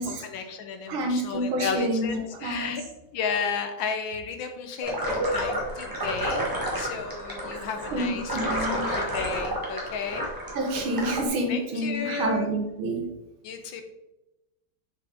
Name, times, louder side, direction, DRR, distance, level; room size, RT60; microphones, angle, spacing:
voice 1, 0.0-2.8 3.1-6.5 6.7-10.3 11.5-12.5 13.4-13.8, left 6 dB, 70° left, 6 dB, 1.4 m, -33 dB
voice 2, 0.9-2.8 6.0-6.1 7.9-9.0 10.5-13.1, right 1 dB, 85° right, 2 dB, 2.0 m, -28 dB
sound 1, 4.8-11.2, equal, 15° right, 1.1 m, -30 dB
6.3 x 5.3 x 3.4 m, 0.96 s
omnidirectional pair, 2.3 m